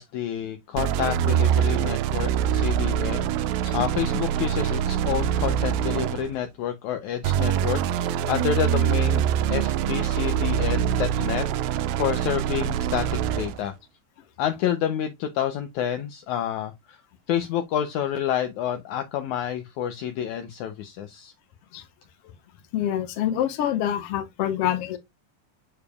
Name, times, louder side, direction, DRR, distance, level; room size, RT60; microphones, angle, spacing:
voice 1, 0.0-11.5 12.0-13.8 14.4-17.0 17.3-21.3, left 10 dB, 80° left, 1.8 m, -29 dB
sound 1, 0.8-6.4 7.2-13.6, right 10 dB, 85° right, 2.4 m, -24 dB
voice 2, 22.7-25.0, left 11 dB, 60° left, 1.6 m, -26 dB
6.9 x 6.7 x 2.3 m
omnidirectional pair, 4.1 m